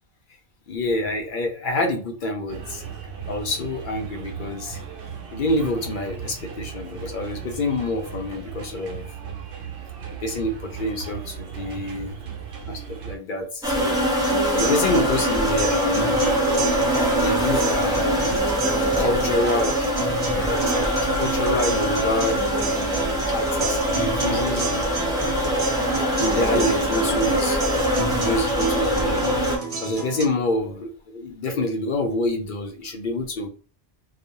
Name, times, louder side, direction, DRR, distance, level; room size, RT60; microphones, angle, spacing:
voice 1, 0.7-2.8 3.3-4.8 5.3-9.1 10.2-12.1 12.6-14.1 14.5-16.3 17.2-18.5 19.0-19.8 20.3-23.0 23.3-25.2 26.1-29.4 29.8-33.5, left 2 dB, 60° left, 4 dB, 0.6 m, -27 dB
sound 1, 2.5-13.2, right 7 dB, 65° right, 0.8 m, -36 dB
sound 2, 13.6-29.6, equal, 5° right, 0.4 m, -23 dB
sound 3, 14.2-30.2, right 3 dB, 35° right, 0.8 m, -31 dB
2.4 x 2.0 x 2.8 m, 0.40 s
omnidirectional pair, 1.1 m